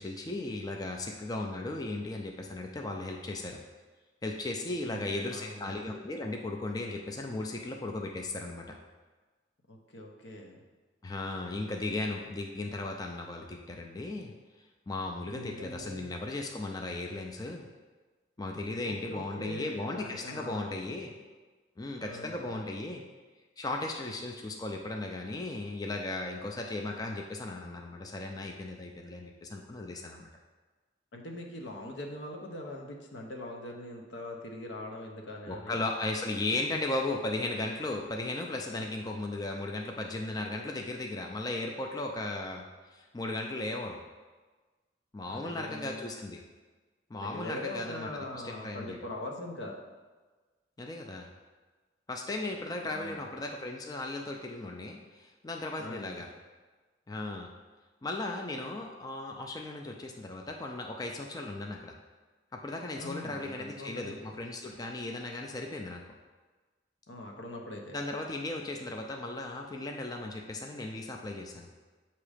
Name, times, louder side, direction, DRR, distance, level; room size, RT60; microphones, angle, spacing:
voice 1, 0.0-3.6 4.2-8.7 11.0-14.3 14.9-17.7 18.4-21.1 21.8-23.0 23.6-30.3 35.5-42.6 42.9-44.0 45.1-46.4 47.1-49.0 50.8-51.3 52.1-56.3 57.1-57.5 58.0-61.9 62.5-66.0 67.9-71.7, left 2 dB, 20° left, 1 dB, 0.4 m, -36 dB
voice 2, 4.9-5.9 9.7-10.6 15.3-16.1 18.8-20.7 22.0-22.5 31.1-35.8 38.7-38.8 45.3-46.1 47.2-49.8 52.5-53.2 55.8-56.2 63.0-64.3 67.1-68.0, left 1 dB, 80° left, 1 dB, 0.8 m, -42 dB
7.2 x 2.9 x 4.9 m, 1.3 s
head